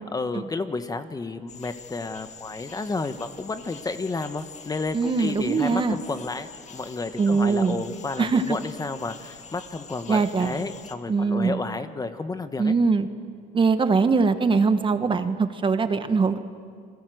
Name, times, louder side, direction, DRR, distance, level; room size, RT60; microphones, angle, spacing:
voice 1, 0.1-12.7, left 3 dB, 20° left, 9 dB, 1.2 m, -31 dB
sound 1, 1.5-11.0, left 5 dB, 40° left, 2.1 m, -45 dB
voice 2, 4.9-6.0 7.2-7.8 8.2-8.6 10.1-10.6 11.1-11.6 12.6-13.1 13.5-16.4, right 4 dB, 30° right, 9 dB, 1.4 m, -22 dB
28.5 x 21.5 x 7.8 m, 2.2 s
cardioid pair, 110°, 17 cm